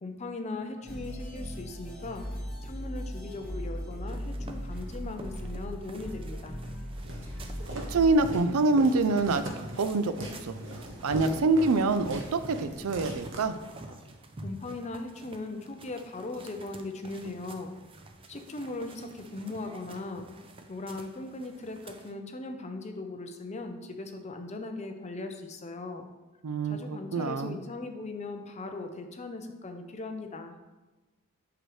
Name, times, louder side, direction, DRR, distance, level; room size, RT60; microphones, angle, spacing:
voice 1, 0.0-2.3 2.6-6.6 14.4-17.7 18.3-20.3 20.7-26.1 26.7-30.5, left 2 dB, 30° left, 6 dB, 0.6 m, -39 dB
sound 1, 0.8-8.1, equal, 5° left, 1.2 m, -38 dB
sound 2, 4.1-22.1, right 2 dB, 25° right, 0.5 m, -49 dB
Walk footsteps, 7.0-14.0, equal, 55° right, 1.2 m, -41 dB
voice 2, 7.9-10.1 10.4-10.6 11.0-13.6 26.4-27.6, right 3 dB, 75° right, 11 dB, 0.5 m, -26 dB
8.0 x 6.0 x 3.2 m, 1.1 s
head